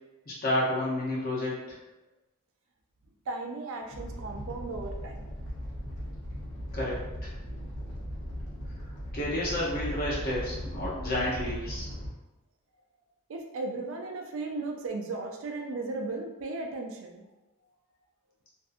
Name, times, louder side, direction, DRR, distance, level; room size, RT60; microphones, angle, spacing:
voice 1, 0.3-1.6 6.7-7.0 9.1-11.9, left 1 dB, 40° left, -6 dB, 0.7 m, -30 dB
voice 2, 3.3-5.3 13.3-17.2, right 3 dB, 60° right, 2 dB, 0.4 m, -36 dB
Animal, 3.9-12.1, equal, 90° left, 0.8 m, -38 dB
2.6 x 2.4 x 2.4 m, 1.0 s
head